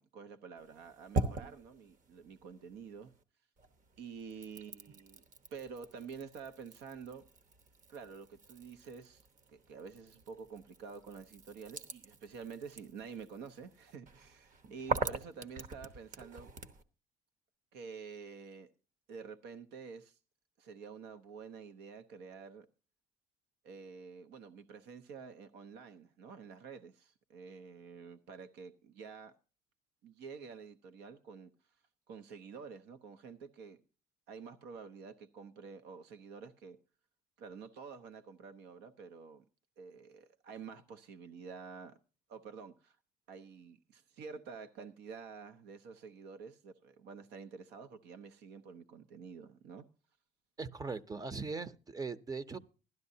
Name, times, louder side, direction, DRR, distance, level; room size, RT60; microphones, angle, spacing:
voice 1, 0.0-3.1 4.0-5.2 5.5-7.2 7.9-9.2 9.5-16.5 17.7-18.7 19.1-20.2 20.6-22.7 23.6-29.3 30.0-31.5 32.1-33.8 34.3-36.8 37.4-39.4 39.8-42.0 42.3-43.0 43.3-49.8, right 5 dB, 85° right, 0.8 m, -49 dB
sound 1, 0.6-3.2 3.6-16.8, right 3 dB, 50° right, 1.0 m, -43 dB
voice 2, 50.6-52.6, right 4 dB, 20° right, 0.6 m, -40 dB
16.0 x 12.0 x 2.7 m
cardioid pair, 110°, 17 cm